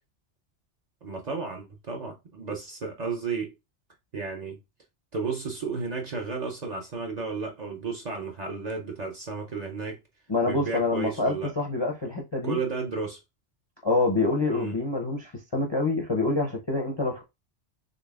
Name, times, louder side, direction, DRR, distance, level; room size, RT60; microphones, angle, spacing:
voice 1, 1.0-3.5 4.1-4.6 5.1-10.0 10.5-11.5 12.4-13.2 14.5-14.8, right 4 dB, 45° right, 0.6 m, -33 dB
voice 2, 10.3-12.6 13.8-17.2, left 3 dB, 35° left, 0.4 m, -26 dB
3.9 x 3.3 x 2.3 m
omnidirectional pair, 1.2 m